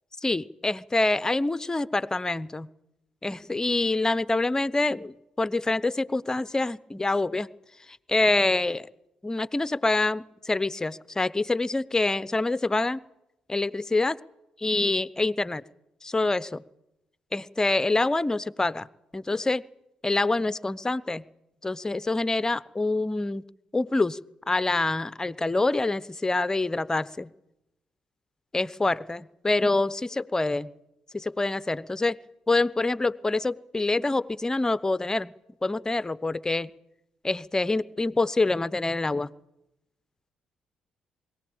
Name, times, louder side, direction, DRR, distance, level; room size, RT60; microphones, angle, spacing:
voice 1, 0.2-2.7 3.2-7.5 8.1-8.9 9.2-13.0 13.5-14.2 14.6-15.6 16.0-16.6 17.3-18.9 19.1-19.6 20.0-21.2 21.6-23.4 23.7-24.2 24.5-27.3 28.5-30.0 30.3-30.7 31.1-32.2 32.5-35.3 35.6-36.7 37.2-39.3, left 2 dB, 20° left, 18 dB, 0.8 m, -26 dB
22.0 x 17.0 x 8.8 m, 0.89 s
hypercardioid pair, 45°, 3 cm